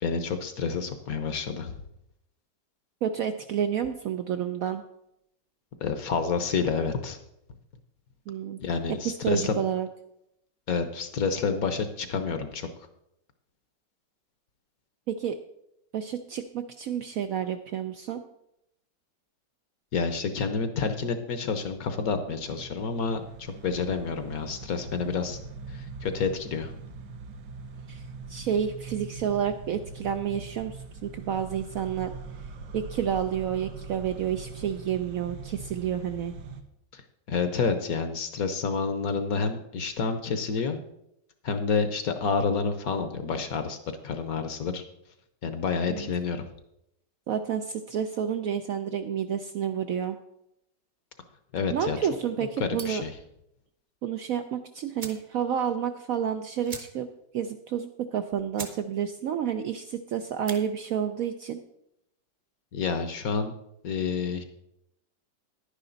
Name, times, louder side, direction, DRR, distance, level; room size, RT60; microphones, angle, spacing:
voice 1, 0.0-1.8 5.8-7.2 8.6-9.6 10.7-12.7 19.9-25.4 25.7-26.7 36.9-37.0 37.3-40.8 41.4-43.8 44.0-44.8 45.4-46.4 51.5-52.0 52.6-53.1 62.7-63.5 63.8-64.4, left 5 dB, 60° left, 9 dB, 1.2 m, -29 dB
voice 2, 3.0-4.8 8.3-8.6 9.2-9.9 15.1-15.4 15.9-18.2 27.9-28.0 28.3-32.1 32.7-36.3 45.9-46.1 47.3-50.2 51.7-53.0 54.0-57.1 57.3-61.6, right 8 dB, 70° right, 7 dB, 0.8 m, -30 dB
sound 1, 21.4-36.6, right 4 dB, 90° right, 1.6 m, -42 dB
sound 2, 52.7-53.1 54.5-54.6 54.9-55.3 55.7-55.8 56.0-56.1 56.6-57.2 57.6-57.7 58.2-58.3 58.5-58.8 59.2-59.5 60.3-60.6, right 4 dB, 35° right, 0.9 m, -41 dB
10.5 x 10.0 x 3.9 m, 0.80 s
omnidirectional pair, 1.9 m